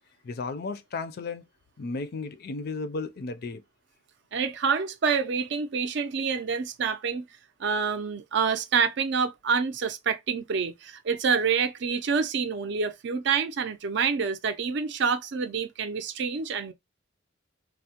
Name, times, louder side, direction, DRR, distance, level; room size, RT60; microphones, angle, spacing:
voice 1, 0.2-1.4 1.8-3.6, left 3 dB, 50° left, 0.4 m, -34 dB
voice 2, 4.3-7.3 7.6-16.7, right 5 dB, 60° right, 0.5 m, -27 dB
3.4 x 2.0 x 2.8 m
head